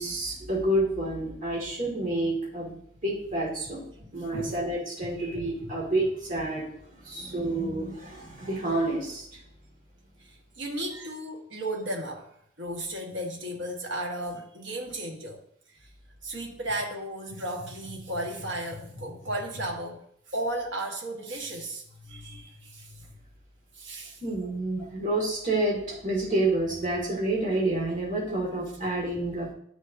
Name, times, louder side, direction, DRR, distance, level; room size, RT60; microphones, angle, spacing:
voice 1, 0.0-3.8 4.1-6.7 7.0-9.4 24.2-29.5, right 2 dB, 40° right, -4 dB, 1.9 m, -29 dB
voice 2, 4.0-4.6 5.3-5.8 10.6-12.3 12.6-15.4 16.2-20.0 20.3-22.9 23.7-24.2, right 1 dB, 75° right, 0 dB, 1.4 m, -34 dB
11.0 x 6.4 x 2.6 m, 0.67 s
head